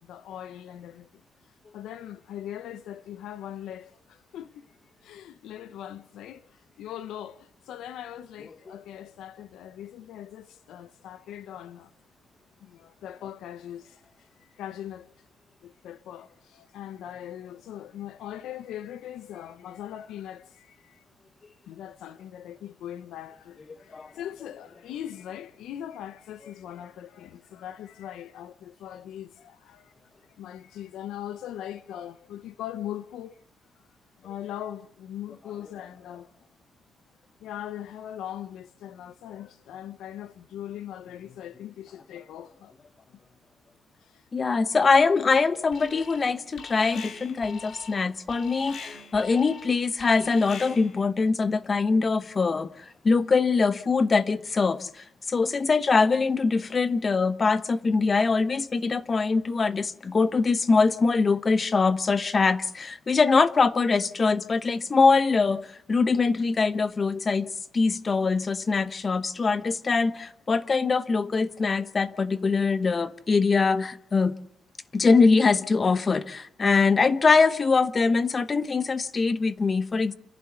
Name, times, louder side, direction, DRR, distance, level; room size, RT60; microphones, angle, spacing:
voice 1, 0.0-1.1 1.7-4.7 5.0-6.4 6.8-11.9 12.6-15.1 15.6-21.0 21.7-29.9 30.4-33.4 34.2-36.3 37.4-42.7 44.0-44.2 65.1-65.2, left 11 dB, 80° left, 0.9 m, -40 dB
voice 2, 44.3-74.4 74.9-80.1, left 4 dB, 35° left, 1.0 m, -23 dB
Alarm, 45.7-46.3 46.6-51.0, left 5 dB, 60° left, 2.4 m, -43 dB
29.0 x 11.5 x 8.1 m
cardioid pair, 90°, 0 cm